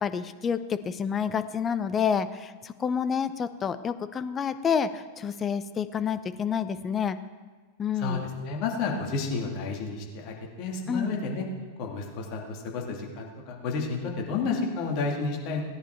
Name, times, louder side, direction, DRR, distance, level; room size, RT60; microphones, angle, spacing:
voice 1, 0.0-7.2 7.8-8.2 10.9-11.1, left 7 dB, 20° left, 11 dB, 0.7 m, -28 dB
voice 2, 8.0-11.5 11.8-15.6, left 4 dB, 40° left, 0 dB, 2.6 m, -31 dB
17.5 x 10.0 x 4.7 m, 1.4 s
figure-of-eight pair, 90°, 0 cm